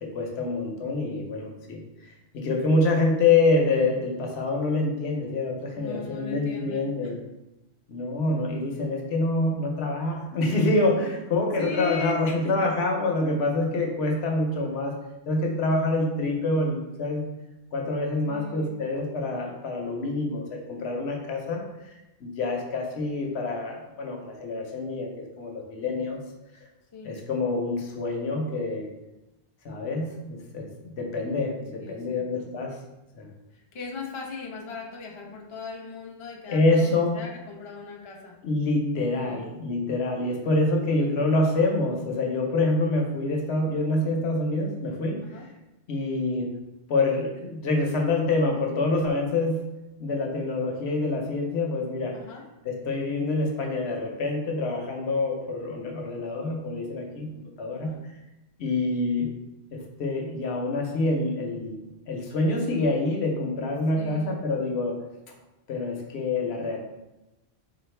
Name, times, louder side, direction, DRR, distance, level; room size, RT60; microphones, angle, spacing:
voice 1, 0.0-7.2 7.9-15.0 15.3-17.2 17.7-21.6 22.2-26.2 26.6-26.7 27.0-28.9 29.6-32.8 33.1-33.3 36.5-37.2 38.4-45.2 45.9-46.5 46.9-49.6 50.0-52.1 52.6-57.3 57.6-57.9 58.6-59.3 59.7-65.0 65.7-66.8, left 2 dB, 75° left, 1 dB, 0.9 m, -26 dB
voice 2, 5.8-7.1 11.6-12.5 18.2-18.7 26.9-27.1 31.8-32.5 33.7-38.4 39.1-39.5 40.9-41.1 45.2-45.5 52.1-52.5 57.7-58.0 64.0-64.4, left 4 dB, 40° left, 0 dB, 0.4 m, -38 dB
4.1 x 2.4 x 3.2 m, 0.97 s
omnidirectional pair, 1.1 m